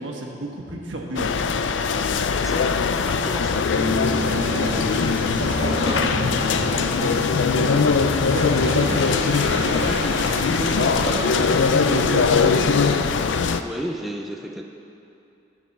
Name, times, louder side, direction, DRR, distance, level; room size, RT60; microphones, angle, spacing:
voice 1, 0.0-1.3 4.1-12.5, right 1 dB, 85° right, 0 dB, 1.4 m, -32 dB
sound 1, 1.2-13.6, left 5 dB, 80° left, 0.4 m, -21 dB
voice 2, 2.4-3.7 12.5-12.8 13.5-14.6, equal, ahead, 1 dB, 0.4 m, -33 dB
sound 2, 3.3-13.3, equal, 65° left, 1.6 m, -30 dB
Bass guitar, 3.8-10.0, left 3 dB, 20° right, 0.8 m, -34 dB
11.5 x 5.4 x 7.1 m, 2.7 s
head